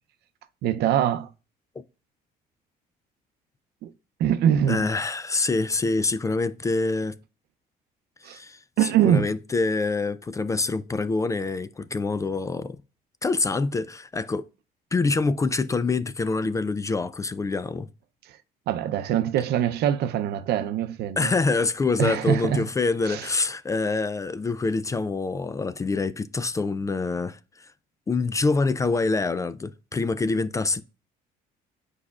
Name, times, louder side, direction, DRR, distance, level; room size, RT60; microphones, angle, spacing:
voice 1, 0.6-1.3 3.8-3.9 4.2-4.9 8.2-8.4 8.8-9.3 18.7-21.3 22.0-22.7 23.0-23.3, right 10 dB, 75° right, 0.6 m, -23 dB
voice 2, 4.7-7.2 8.2-12.8 13.2-14.4 14.9-17.9 21.2-27.7 28.1-30.8, left 3 dB, 20° left, 0.3 m, -26 dB
8.4 x 4.9 x 2.3 m
cardioid pair, 110°, 17 cm